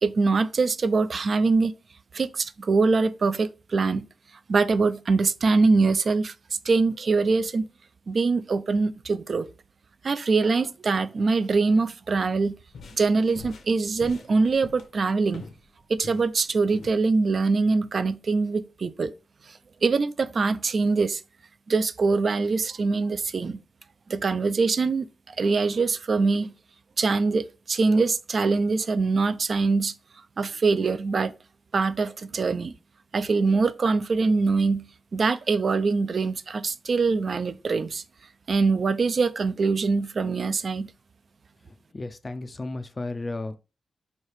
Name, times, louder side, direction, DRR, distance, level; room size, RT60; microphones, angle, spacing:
voice 1, 0.0-1.7 2.1-4.0 4.5-6.3 6.6-7.7 8.1-9.5 10.0-12.6 13.0-15.4 15.9-19.1 19.5-21.2 21.7-23.6 24.1-26.5 27.0-29.9 30.4-31.3 31.7-32.7 33.1-34.8 35.1-38.0 38.5-40.9, right 4 dB, 50° right, 0.3 m, -23 dB
sound 1, 12.5-15.6 15.9-17.0, left 4 dB, 75° left, 0.7 m, -44 dB
voice 2, 41.9-43.6, left 2 dB, 30° left, 0.3 m, -33 dB
3.3 x 2.7 x 4.5 m
wide cardioid pair, 130°, 0 cm